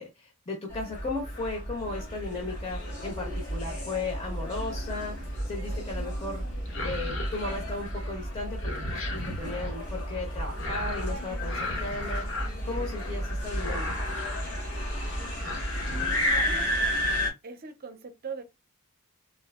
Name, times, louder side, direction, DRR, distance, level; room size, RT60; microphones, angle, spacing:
voice 1, 0.0-6.4 6.8-8.6 8.9-12.2 12.6-13.9, left 3 dB, 30° left, 0.8 m, -36 dB
sound 1, 0.7-17.3, equal, 85° left, 1.9 m, -32 dB
sound 2, 5.3-5.7 6.6-8.1 8.4-9.7 10.6-11.1 11.4-13.2 13.5-14.5 14.9-15.1 15.4-16.4 16.8-17.2, left 2 dB, 65° left, 0.9 m, -37 dB
voice 2, 10.6-10.9 15.9-16.7 17.4-18.4, right 4 dB, 45° right, 0.6 m, -41 dB
3.5 x 2.6 x 2.3 m
head